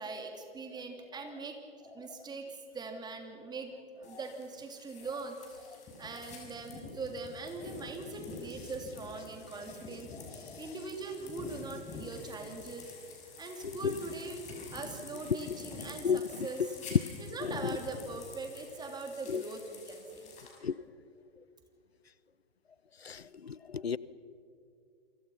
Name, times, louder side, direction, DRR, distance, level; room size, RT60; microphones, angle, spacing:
voice 1, 0.0-1.6 1.9-2.5 2.7-12.9 13.4-16.8 17.2-20.3, right 3 dB, 15° right, 4 dB, 3.2 m, -42 dB
sound 1, 4.0-20.6, left 3 dB, 25° left, 6.2 m, -48 dB
voice 2, 13.6-13.9 16.0-16.2 16.9-17.0 17.4-17.8 19.3-19.4 20.6-20.8 23.0-24.0, left 6 dB, 85° left, 20 dB, 0.7 m, -31 dB
29.0 x 24.0 x 5.7 m, 2.5 s
figure-of-eight pair, 110°, 30 cm